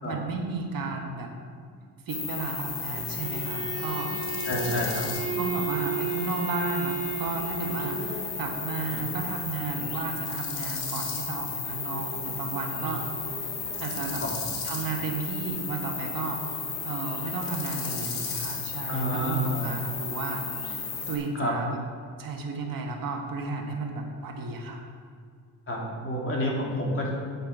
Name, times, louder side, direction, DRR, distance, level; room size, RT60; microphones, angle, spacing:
voice 1, 0.0-1.3 2.1-4.1 5.4-13.0 13.8-14.2 14.6-20.4 20.7-20.8 21.1-21.8 22.2-24.9, right 4 dB, 55° right, 2 dB, 1.5 m, -33 dB
sound 1, 2.1-21.2, left 5 dB, 80° left, 2.2 m, -34 dB
Bowed string instrument, 3.2-8.0, right 7 dB, 35° right, 1.3 m, -34 dB
voice 2, 4.4-5.1 8.9-9.0 12.8-12.9 14.2-14.4 18.9-19.8 21.3-21.6 25.7-27.1, equal, 30° left, -2 dB, 2.6 m, -29 dB
8.5 x 8.1 x 4.8 m, 2.2 s
cardioid pair, 90°, 39 cm